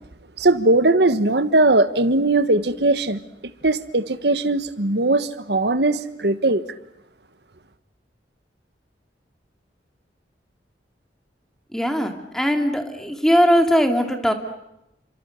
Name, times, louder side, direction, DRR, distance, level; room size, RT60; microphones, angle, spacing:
voice 1, 0.4-3.2 3.6-6.6, right 2 dB, 70° right, 1.4 m, -19 dB
voice 2, 11.7-14.3, equal, 5° left, 2.7 m, -20 dB
29.5 x 26.5 x 6.6 m
head